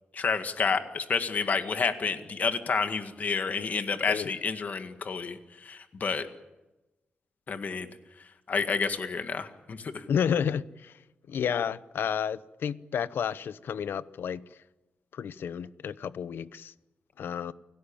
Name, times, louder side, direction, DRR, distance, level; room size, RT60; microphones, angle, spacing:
voice 1, 0.1-6.3 7.5-7.9 8.5-10.0, left 5 dB, 50° left, 1.9 m, -29 dB
voice 2, 10.1-10.9 11.3-14.4 15.1-16.7 17.2-17.5, left 8 dB, 80° left, 0.8 m, -31 dB
29.5 x 17.0 x 8.8 m
wide cardioid pair, 145°, 4 cm